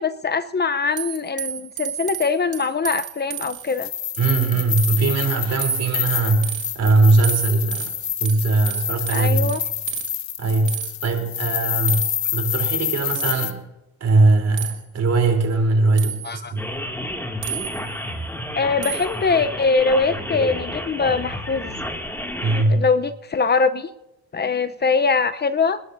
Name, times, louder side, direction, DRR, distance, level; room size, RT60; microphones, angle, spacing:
voice 1, 0.0-3.9 9.1-9.6 16.2-16.5 18.6-21.7 22.7-23.9 24.3-25.8, left 4 dB, 35° left, 11 dB, 0.7 m, -22 dB
sound 1, 1.0-3.8 4.1-4.5 4.8-5.2 5.6-6.7 7.2-10.1 10.7-10.9 11.9-12.3 13.1-13.5 14.6-14.8 16.0-16.4 17.4-18.0 18.8-19.2, right 11 dB, 75° right, 2.3 m, -32 dB
sound 2, 3.7-13.5, left 11 dB, 65° left, 1.2 m, -27 dB
voice 2, 4.2-7.9 8.2-9.6 10.4-12.1 12.3-13.6 14.0-16.6 22.4-22.9, right 3 dB, 55° right, 3 dB, 3.5 m, -20 dB
sound 3, 16.6-22.6, left 1 dB, 5° left, 2.3 m, -30 dB
27.5 x 11.5 x 2.7 m, 0.95 s
cardioid pair, 90°, 30 cm